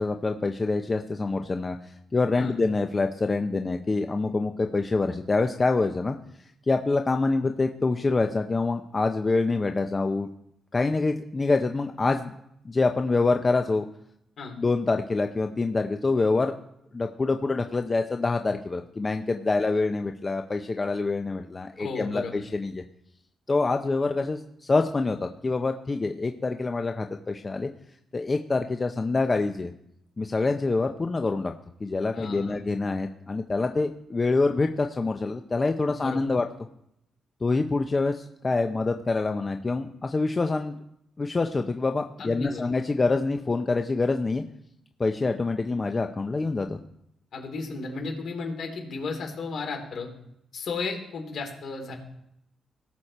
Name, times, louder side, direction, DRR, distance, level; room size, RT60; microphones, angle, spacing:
voice 1, 0.0-6.2 6.7-10.3 10.7-12.3 12.6-13.9 14.6-16.5 16.9-22.8 23.5-27.7 28.1-29.7 30.2-31.5 31.8-36.4 37.4-40.8 41.2-44.4 45.0-46.8, left 3 dB, 35° left, 5 dB, 0.9 m, -26 dB
voice 2, 21.8-22.4 32.1-32.6 35.8-36.2 42.2-42.7 47.3-50.1 50.5-51.9, left 4 dB, 70° left, 2 dB, 3.5 m, -34 dB
18.5 x 6.6 x 4.4 m, 0.78 s
supercardioid pair, 60°, 0 cm